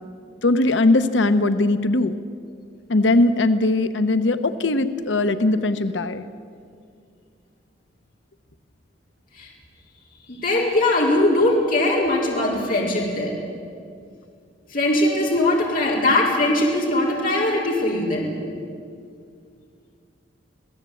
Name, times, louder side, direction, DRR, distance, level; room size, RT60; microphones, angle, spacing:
voice 1, 0.4-2.2 2.9-6.3, left 2 dB, 80° left, 10 dB, 1.0 m, -20 dB
voice 2, 10.3-13.3 14.7-18.3, left 1 dB, 50° left, -3 dB, 4.4 m, -20 dB
27.5 x 17.0 x 8.6 m, 2.3 s
head